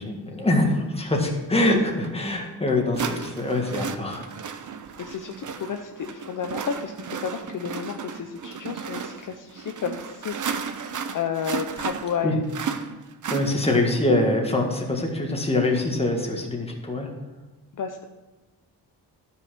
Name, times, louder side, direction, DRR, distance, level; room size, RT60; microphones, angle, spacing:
voice 1, 0.0-4.3 12.2-12.3 13.3-17.1, left 2 dB, 15° left, 1 dB, 1.7 m, -24 dB
sound 1, 2.0-2.1 2.9-14.0, right 6 dB, 45° right, 0.7 m, -34 dB
voice 2, 5.0-10.3 11.1-12.4 17.7-18.0, left 7 dB, 50° left, 5 dB, 0.7 m, -31 dB
12.5 x 5.4 x 6.0 m, 1.2 s
cardioid pair, 115°, 41 cm